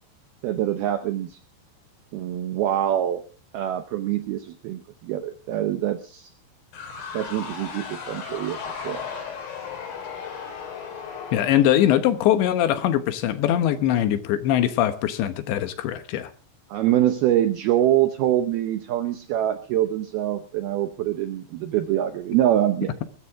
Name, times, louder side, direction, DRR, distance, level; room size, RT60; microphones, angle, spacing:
voice 1, 0.4-1.4 2.1-3.2 3.5-6.3 7.1-9.0 16.7-22.9, right 12 dB, 80° right, 2.3 m, -24 dB
sound 1, 6.7-12.5, left 6 dB, 90° left, 6.9 m, -36 dB
voice 2, 11.3-16.3, left 11 dB, 75° left, 3.2 m, -22 dB
21.0 x 14.5 x 3.6 m
omnidirectional pair, 5.6 m